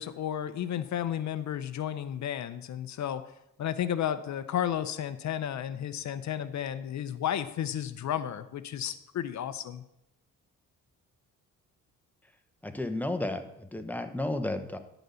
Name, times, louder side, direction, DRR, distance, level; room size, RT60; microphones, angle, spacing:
voice 1, 0.0-3.3 3.6-9.8, left 10 dB, 55° left, 12 dB, 0.6 m, -33 dB
voice 2, 12.6-14.8, left 1 dB, 5° left, 7 dB, 0.8 m, -32 dB
11.0 x 3.9 x 6.8 m, 0.83 s
cardioid pair, 85°, 33 cm